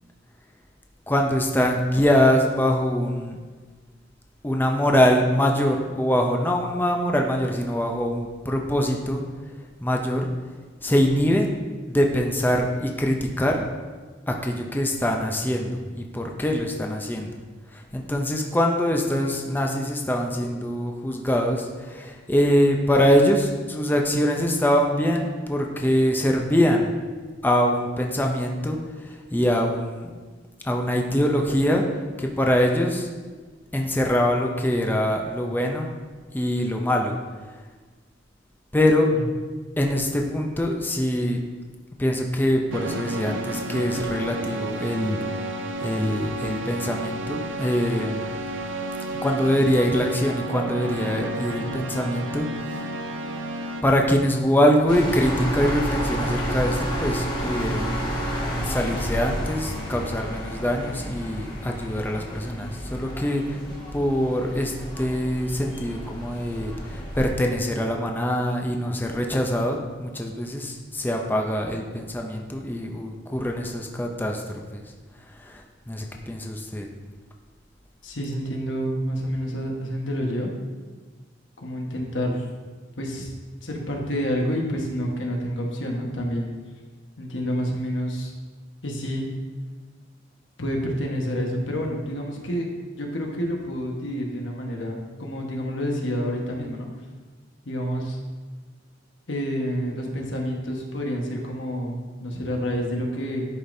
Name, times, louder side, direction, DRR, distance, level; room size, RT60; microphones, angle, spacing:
voice 1, 1.1-3.4 4.4-9.2 9.8-10.3 10.8-11.5 11.9-13.7 14.3-17.4 17.7-26.9 27.4-30.1 30.6-31.8 32.2-33.1 33.7-35.9 36.3-37.2 38.7-39.1 39.8-41.4 42.0-45.5 45.8-48.4 49.2-52.8 53.8-58.2 58.6-63.6 63.9-74.8 75.3-76.9, equal, 10° left, 1 dB, 0.5 m, -23 dB
sound 1, 42.7-53.8, right 2 dB, 85° right, 0.6 m, -31 dB
sound 2, 54.9-67.3, equal, 25° left, 1.2 m, -30 dB
voice 2, 78.0-80.5 81.6-82.5 83.0-83.3 83.6-86.5 87.2-88.3 88.8-89.3 90.6-92.7 93.0-96.9 97.6-98.2 99.3-103.4, equal, 75° left, 0 dB, 1.3 m, -28 dB
11.0 x 5.1 x 2.7 m, 1.4 s
head